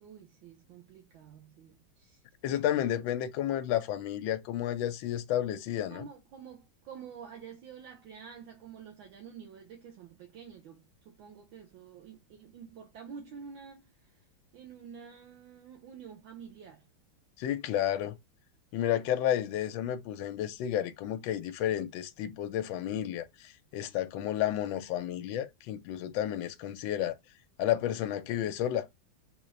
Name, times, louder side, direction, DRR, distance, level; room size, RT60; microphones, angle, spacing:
voice 1, 0.0-2.2 5.9-14.2 14.5-16.9, right 7 dB, 75° right, 1.5 m, -49 dB
voice 2, 2.4-6.1 17.4-18.2 18.7-27.1 27.6-28.9, left 11 dB, 75° left, 1.3 m, -31 dB
4.1 x 2.5 x 3.1 m
omnidirectional pair, 2.2 m